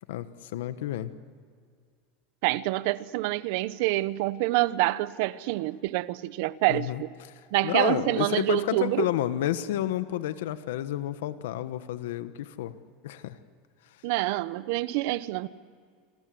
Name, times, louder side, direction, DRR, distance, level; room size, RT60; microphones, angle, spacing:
voice 1, 0.1-1.1 6.7-7.0 7.3-12.7 13.0-13.4, left 12 dB, 90° left, 1.2 m, -30 dB
voice 2, 2.4-7.1 7.5-9.0 14.0-15.5, right 18 dB, 55° right, 0.8 m, -27 dB
27.0 x 26.5 x 7.8 m
supercardioid pair, 175°, 0 cm